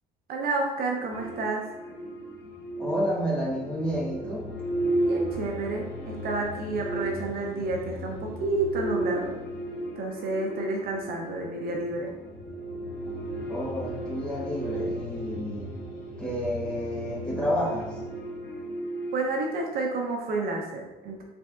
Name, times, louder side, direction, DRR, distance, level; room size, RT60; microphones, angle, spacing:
voice 1, 0.3-1.7 5.0-9.3 10.0-12.1 19.1-21.2, right 3 dB, 65° right, 1 dB, 0.6 m, -30 dB
sound 1, 1.1-20.0, right 1 dB, 75° left, 1.0 m, -35 dB
voice 2, 2.8-4.5 13.5-15.8 16.2-18.0, equal, 5° left, -7 dB, 1.4 m, -30 dB
3.9 x 3.4 x 2.4 m, 1.1 s
cardioid pair, 110°, 17 cm